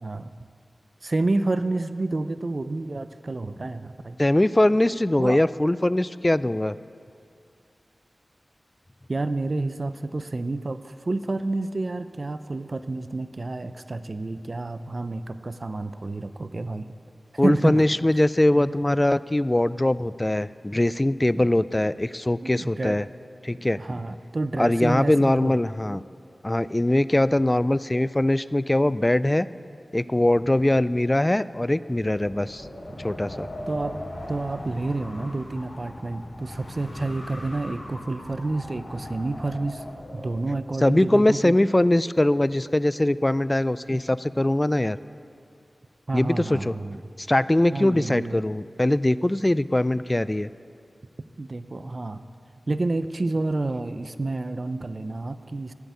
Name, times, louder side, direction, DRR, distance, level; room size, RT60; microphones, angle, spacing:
voice 1, 0.0-0.3 1.0-4.2 5.2-5.4 9.1-16.9 17.4-17.8 18.6-18.7 22.5-23.0 23.8-25.6 25.9-26.0 32.9-33.0 33.7-34.0 34.3-39.8 40.1-41.6 43.9-44.0 46.1-47.0 47.7-48.4 51.4-52.2 52.7-55.7, right 2 dB, 55° right, 11 dB, 0.6 m, -29 dB
voice 2, 4.2-6.8 17.4-23.1 23.4-24.0 24.6-26.0 26.4-29.5 29.9-32.7 33.0-33.5 40.8-45.0 46.1-46.7 47.2-50.5, left 1 dB, 25° left, 16 dB, 0.4 m, -22 dB
Wind, 31.9-40.6, left 1 dB, 65° left, 3.6 m, -39 dB
13.5 x 7.9 x 9.6 m, 2.5 s
cardioid pair, 50°, 0 cm